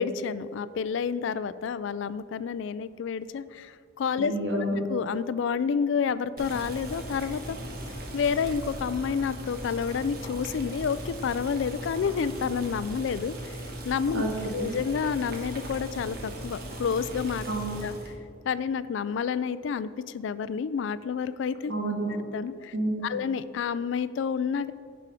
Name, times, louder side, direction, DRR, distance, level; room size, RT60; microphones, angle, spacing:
voice 1, 0.0-4.3 4.9-7.6 8.1-13.6 13.8-14.2 14.5-17.5 17.8-17.9 18.4-21.7 22.3-22.7 23.0-24.7, left 6 dB, 70° left, 15 dB, 0.3 m, -29 dB
voice 2, 4.2-4.8 14.1-14.7 17.5-17.9 21.7-22.2 22.7-23.2, right 1 dB, 75° right, 0 dB, 1.6 m, -30 dB
Boiling, 6.4-18.1, right 1 dB, 50° right, 1.2 m, -38 dB
10.0 x 5.1 x 4.9 m, 2.1 s
head